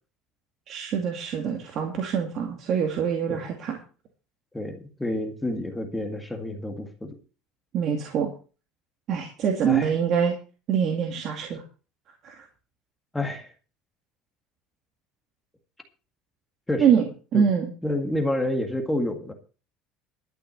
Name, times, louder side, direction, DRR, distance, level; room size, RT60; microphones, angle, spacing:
voice 1, 0.7-3.8 7.7-8.3 9.1-10.4 10.7-11.6 12.2-12.5 16.8-17.7, right 7 dB, 40° right, 2 dB, 2.2 m, -25 dB
voice 2, 4.5-7.1 9.7-9.9 13.1-13.5 16.7-16.9 17.3-17.5 17.8-19.3, left 1 dB, 5° left, 4 dB, 1.9 m, -29 dB
12.5 x 6.0 x 8.1 m, 0.35 s
cardioid pair, 160°, 0 cm